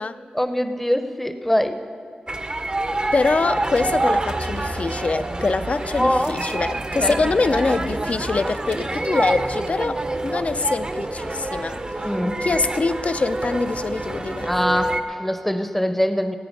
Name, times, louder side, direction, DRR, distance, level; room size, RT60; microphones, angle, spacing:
voice 1, 0.3-1.8 6.0-6.3 7.0-7.2 12.0-12.4 14.5-16.4, equal, 5° left, 8 dB, 0.7 m, -22 dB
sound 1, 2.3-15.0, right 2 dB, 30° right, 0.7 m, -27 dB
voice 2, 3.1-11.8 12.4-14.5, left 3 dB, 50° left, 11 dB, 0.5 m, -24 dB
18.5 x 8.6 x 5.3 m, 2.3 s
wide cardioid pair, 90°, 3 cm